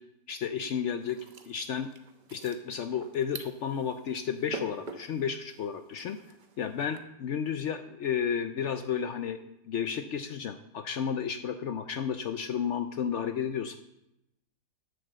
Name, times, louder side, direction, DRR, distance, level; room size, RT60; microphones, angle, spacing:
voice 1, 0.3-1.2 1.5-1.9 2.3-6.2 6.6-9.4 9.7-13.8, left 7 dB, 90° left, 8 dB, 0.6 m, -32 dB
sound 1, 1.0-7.0, right 3 dB, 45° right, 0.7 m, -47 dB
10.5 x 6.0 x 7.4 m, 0.86 s
omnidirectional pair, 1.9 m